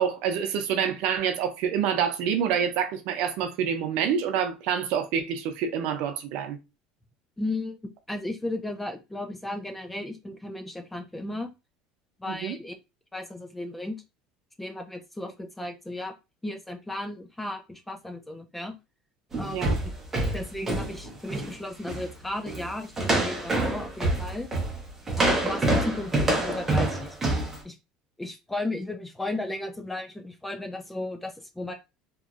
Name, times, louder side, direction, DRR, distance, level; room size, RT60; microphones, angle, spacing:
voice 1, 0.0-6.6 12.3-12.6 19.5-19.8, right 8 dB, 60° right, 0.5 m, -27 dB
voice 2, 7.4-7.8 8.1-11.5 12.2-12.7 13.1-14.0 14.6-16.1 16.4-18.8 19.4-19.7 20.3-24.5 25.2-27.2 27.6-27.8 28.2-31.7, left 2 dB, 5° left, 0.3 m, -35 dB
sound 1, 19.3-21.5 21.9-22.1 22.5-22.7 23.0-27.6, right 2 dB, 15° right, 0.8 m, -26 dB
2.9 x 2.5 x 2.4 m
cardioid pair, 165°, 2 cm